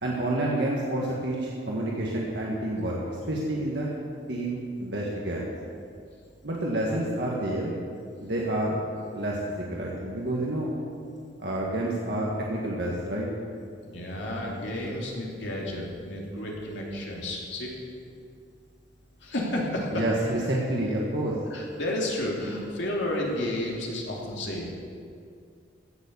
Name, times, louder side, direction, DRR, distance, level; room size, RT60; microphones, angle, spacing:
voice 1, 0.0-3.0 3.3-3.9 4.3-5.5 6.4-7.7 8.2-8.8 9.1-10.7 11.4-13.3 19.9-21.4, right 1 dB, 65° right, -4 dB, 1.7 m, -29 dB
voice 2, 13.9-17.7 19.2-20.0 21.5-24.8, left 1 dB, 75° left, -3 dB, 2.9 m, -31 dB
16.0 x 7.2 x 7.0 m, 2.3 s
head